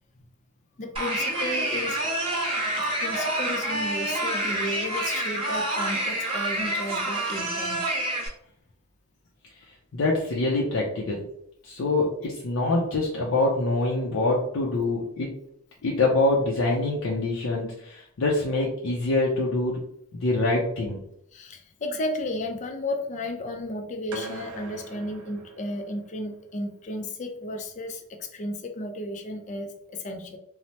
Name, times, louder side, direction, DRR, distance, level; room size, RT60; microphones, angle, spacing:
voice 1, 0.8-2.0 3.0-7.8 21.3-30.4, left 1 dB, 35° left, 5 dB, 0.4 m, -33 dB
sound 1, 1.0-8.3, right 1 dB, 25° right, 0.7 m, -28 dB
voice 2, 9.9-11.2 11.6-15.4 15.8-19.8 20.1-21.0, left 2 dB, 85° left, -3 dB, 0.5 m, -25 dB
sound 2, 24.1-26.2, right 2 dB, 85° right, 0.4 m, -41 dB
3.1 x 2.0 x 2.8 m, 0.73 s
head